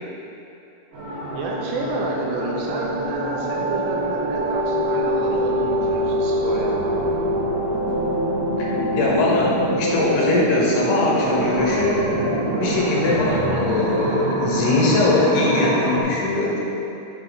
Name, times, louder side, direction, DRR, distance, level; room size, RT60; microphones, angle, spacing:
sound 1, 0.9-16.0, right 2 dB, 55° right, 2.7 m, -27 dB
voice 1, 1.3-7.1 13.1-13.4, right 2 dB, 80° right, -2 dB, 2.8 m, -29 dB
sound 2, 1.8-12.1, equal, 55° left, 2.2 m, -25 dB
voice 2, 9.0-9.5 9.8-12.0 12.6-16.6, left 3 dB, 75° left, -4 dB, 2.7 m, -21 dB
7.6 x 3.5 x 4.9 m, 2.9 s
omnidirectional pair, 5.0 m